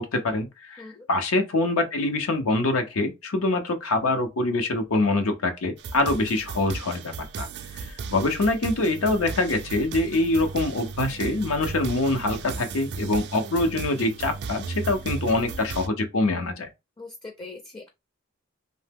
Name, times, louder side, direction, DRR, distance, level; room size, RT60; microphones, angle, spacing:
voice 1, 0.0-16.7, left 2 dB, 85° left, 0.6 m, -25 dB
sound 1, 5.8-15.9, right 4 dB, 55° right, 0.4 m, -35 dB
voice 2, 17.0-17.9, left 3 dB, 20° left, 0.5 m, -41 dB
2.8 x 2.0 x 3.4 m
head